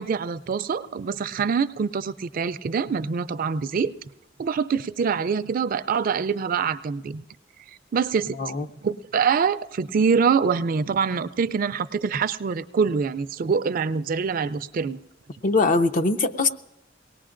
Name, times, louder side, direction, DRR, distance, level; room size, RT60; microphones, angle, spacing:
voice 1, 0.0-3.9 4.4-7.2 7.9-8.4 8.8-15.0, right 6 dB, 50° right, 13 dB, 0.4 m, -25 dB
voice 2, 15.4-16.5, left 3 dB, 45° left, 9 dB, 0.6 m, -21 dB
23.0 x 18.5 x 2.5 m, 0.99 s
head